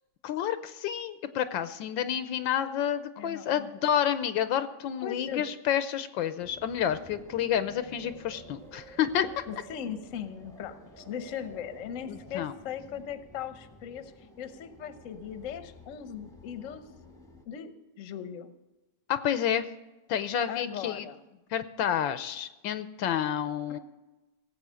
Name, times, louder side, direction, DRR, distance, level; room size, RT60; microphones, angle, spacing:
voice 1, 0.2-9.4 12.0-12.5 19.1-19.6 20.1-21.0 21.5-23.8, left 9 dB, 80° left, 12 dB, 1.4 m, -29 dB
voice 2, 3.2-3.8 5.0-5.4 9.5-14.1 14.4-16.8 17.5-18.5 20.5-21.4 23.7-23.8, left 8 dB, 50° left, 10 dB, 1.0 m, -39 dB
sound 1, 6.4-17.5, right 1 dB, ahead, 1.0 m, -51 dB
17.5 x 7.6 x 6.2 m, 1.1 s
omnidirectional pair, 2.1 m